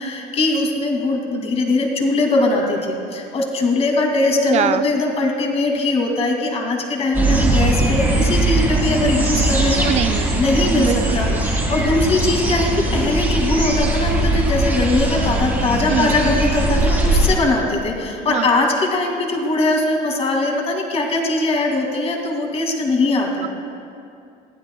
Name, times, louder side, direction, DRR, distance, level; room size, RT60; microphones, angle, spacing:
voice 1, 0.0-9.9 10.4-23.5, left 2 dB, 35° left, 1 dB, 2.2 m, -20 dB
voice 2, 4.5-4.8 9.8-10.3 10.6-11.4 15.9-16.2 18.3-18.5, right 9 dB, 35° right, 12 dB, 0.4 m, -23 dB
sound 1, 7.1-17.4, right 1 dB, 10° right, 2.5 m, -20 dB
20.5 x 15.5 x 2.2 m, 2.5 s
cardioid pair, 145°, 18 cm